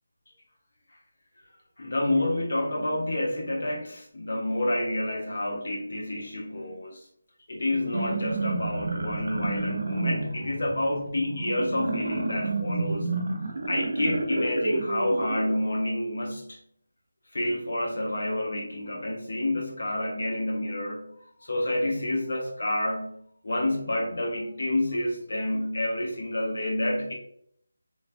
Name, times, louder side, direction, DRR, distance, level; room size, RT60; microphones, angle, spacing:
voice 1, 1.8-7.1 7.5-13.1 13.7-16.6 17.3-27.1, left 1 dB, 50° left, 0 dB, 0.6 m, -29 dB
sound 1, 7.7-15.6, right 2 dB, 50° right, 0.4 m, -30 dB
3.1 x 2.2 x 2.5 m, 0.69 s
figure-of-eight pair, 175°, 0 cm